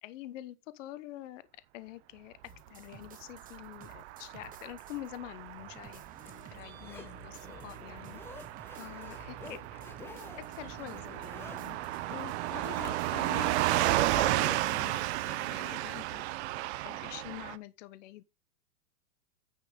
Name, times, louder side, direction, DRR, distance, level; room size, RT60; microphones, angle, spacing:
voice 1, 0.0-1.4 1.7-2.4 2.7-8.2 8.8-9.6 10.6-11.8 12.1-16.3 16.8-18.2, left 15 dB, 60° left, 1.0 m, -46 dB
sound 1, 2.4-5.2 5.6-14.5, right 5 dB, 20° right, 1.1 m, -52 dB
Car passing by / Truck, 3.2-17.6, right 16 dB, 50° right, 0.8 m, -33 dB
Zipper (clothing), 5.8-13.4 13.8-13.9, left 4 dB, 5° left, 0.4 m, -52 dB
9.6 x 5.8 x 3.9 m
hypercardioid pair, 135°, 43 cm